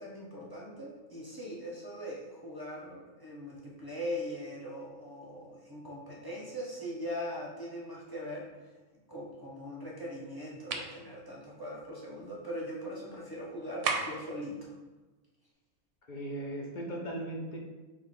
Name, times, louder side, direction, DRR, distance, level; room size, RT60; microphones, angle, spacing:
voice 1, 0.0-8.5 9.1-14.7, equal, 20° right, -5 dB, 0.7 m, -40 dB
sound 1, 10.7-11.0 13.8-14.3, right 5 dB, 70° right, 0.9 m, -32 dB
voice 2, 16.1-17.6, right 1 dB, 50° left, -1 dB, 0.6 m, -37 dB
5.1 x 2.3 x 4.2 m, 1.2 s
omnidirectional pair, 1.4 m